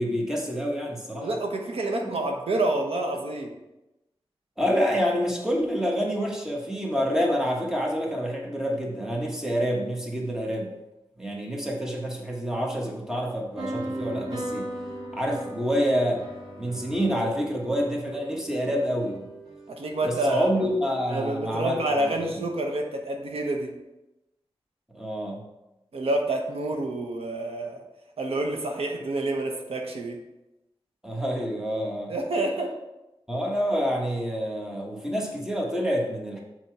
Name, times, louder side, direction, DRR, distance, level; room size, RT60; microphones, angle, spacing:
voice 1, 0.0-1.3 4.6-10.7 11.2-14.7 15.1-16.2 16.6-19.3 20.0-22.5 24.9-25.4 31.0-32.1 33.3-36.4, equal, 5° right, -1 dB, 1.4 m, -27 dB
voice 2, 1.2-3.5 19.7-20.8 21.1-23.7 25.9-27.8 28.2-30.2 32.1-32.7, right 2 dB, 85° right, 2 dB, 1.0 m, -28 dB
sound 1, 13.6-20.5, right 1 dB, 55° right, 1.6 m, -38 dB
7.0 x 4.5 x 4.7 m, 0.95 s
wide cardioid pair, 115°, 10 cm